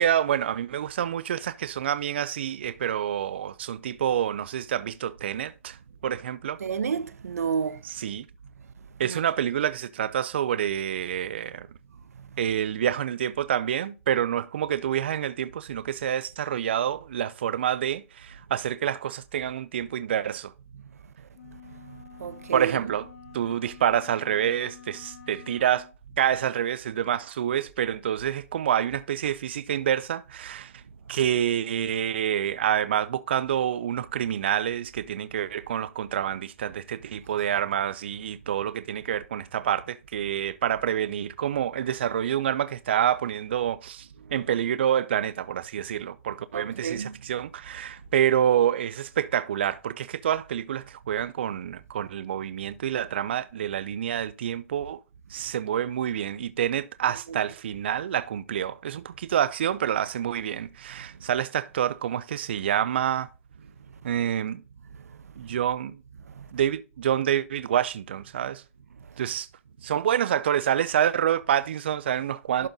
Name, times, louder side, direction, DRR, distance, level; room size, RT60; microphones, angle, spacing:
voice 1, 0.0-5.8 6.0-6.6 7.8-8.2 9.0-11.7 12.4-20.5 22.5-23.1 23.3-25.9 26.2-30.8 31.1-55.0 55.3-63.3 64.0-64.6 65.4-66.0 66.5-68.6 69.2-69.5 69.8-72.7, right 10 dB, 45° right, 0.4 m, -27 dB
voice 2, 6.6-7.8 9.0-9.2 22.2-22.9 46.5-47.1 57.3-57.4 66.4-66.5 72.6-72.7, right 6 dB, 85° right, 0.7 m, -30 dB
sound 1, 21.3-26.0, left 9 dB, 70° left, 2.1 m, -48 dB
11.5 x 4.0 x 3.8 m
hypercardioid pair, 175°, 8 cm